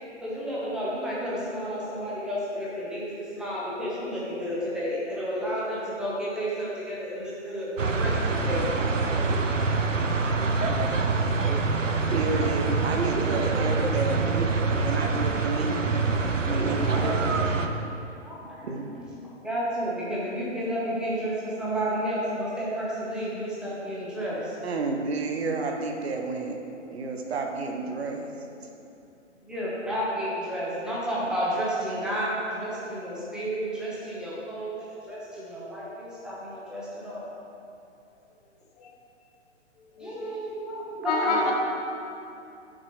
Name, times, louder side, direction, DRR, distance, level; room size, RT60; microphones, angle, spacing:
voice 1, 0.2-9.3 16.7-17.1 18.1-18.7 18.9-19.0 19.4-24.5 29.5-37.3 40.0-41.5, equal, ahead, -8 dB, 1.2 m, -31 dB
sound 1, 7.8-17.7, right 4 dB, 85° right, 0.7 m, -25 dB
voice 2, 12.1-14.4 14.8-15.9 16.5-17.5 18.6-18.9 24.6-26.6 26.9-28.3, right 3 dB, 55° right, 3 dB, 1.1 m, -31 dB
voice 3, 39.9-40.4 41.0-41.5, left 3 dB, 30° left, 0 dB, 0.9 m, -28 dB
10.5 x 6.5 x 3.2 m, 2.7 s
figure-of-eight pair, 125°, 37 cm